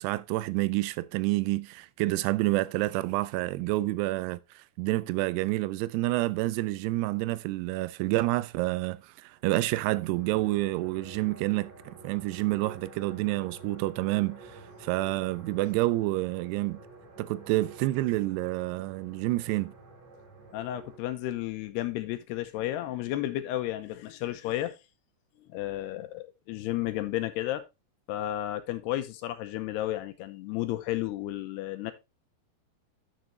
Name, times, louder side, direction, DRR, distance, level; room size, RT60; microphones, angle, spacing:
voice 1, 0.0-14.5 14.8-16.8 17.2-19.7, right 18 dB, 85° right, 2.7 m, -28 dB
sound 1, 9.6-21.0, right 3 dB, 45° right, 3.7 m, -50 dB
voice 2, 20.5-24.8 25.5-27.6 28.1-31.9, left 14 dB, 85° left, 2.9 m, -32 dB
9.9 x 6.7 x 3.1 m
omnidirectional pair, 4.8 m